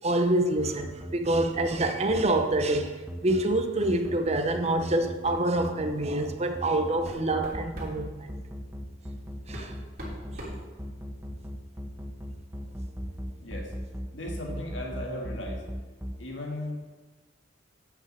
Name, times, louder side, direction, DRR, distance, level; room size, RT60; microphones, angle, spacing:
voice 1, 0.0-2.9 3.2-8.3 9.5-9.7, right 1 dB, 35° right, 0.8 m, -26 dB
sound 1, 0.6-16.1, equal, 10° right, 1.0 m, -37 dB
sound 2, 1.2-1.4 1.7-2.5 4.0-4.2 4.6-4.8 5.2-5.4 6.3-6.4 6.8-8.0 9.0-9.1 9.5-11.3, equal, 50° right, 3.4 m, -43 dB
voice 2, 13.4-13.7 14.1-15.7 16.2-16.9, left 1 dB, 75° left, 2.2 m, -36 dB
8.5 x 6.4 x 6.9 m
head